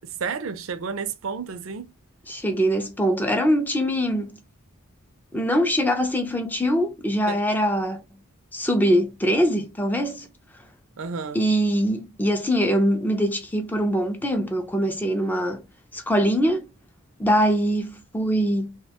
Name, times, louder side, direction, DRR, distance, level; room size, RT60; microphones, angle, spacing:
voice 1, 0.0-1.9 7.3-7.4 11.0-11.4, right 5 dB, 65° right, 0.4 m, -31 dB
voice 2, 2.3-4.3 5.3-8.0 8.5-10.3 11.3-15.6 15.9-16.7 17.2-18.8, equal, 10° left, 0.3 m, -23 dB
2.3 x 2.2 x 2.8 m
head